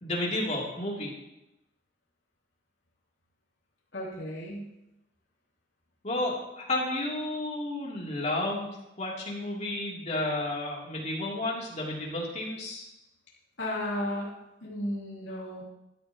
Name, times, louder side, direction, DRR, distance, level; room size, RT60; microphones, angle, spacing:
voice 1, 0.0-1.1 6.0-12.8, left 1 dB, 40° left, -4 dB, 3.0 m, -32 dB
voice 2, 3.9-4.7 13.6-14.3 14.6-15.6, left 1 dB, 65° left, -6 dB, 3.0 m, -34 dB
15.5 x 11.0 x 3.0 m, 0.92 s
head